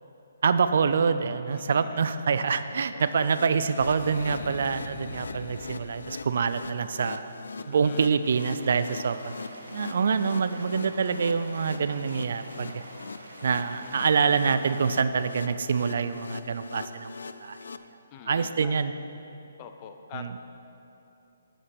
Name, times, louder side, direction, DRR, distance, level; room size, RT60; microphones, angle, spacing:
voice 1, 0.4-7.3 7.7-9.3 9.7-12.8 13.4-17.1 17.4-17.6 18.3-18.9 20.1-20.3, right 5 dB, 55° right, 12 dB, 0.4 m, -26 dB
voice 2, 1.5-2.0 2.9-3.3 7.6-8.1 10.7-11.0 13.8-14.2 18.1-18.8 19.6-20.4, left 7 dB, 25° left, 6 dB, 0.6 m, -46 dB
sound 1, 3.0-17.8, left 4 dB, 85° left, 0.4 m, -42 dB
Boom, 3.8-6.5, left 3 dB, 65° left, 0.9 m, -41 dB
sound 2, 8.2-15.0, right 2 dB, 90° right, 1.4 m, -47 dB
8.8 x 8.0 x 6.1 m, 2.8 s
hypercardioid pair, 165°, 0 cm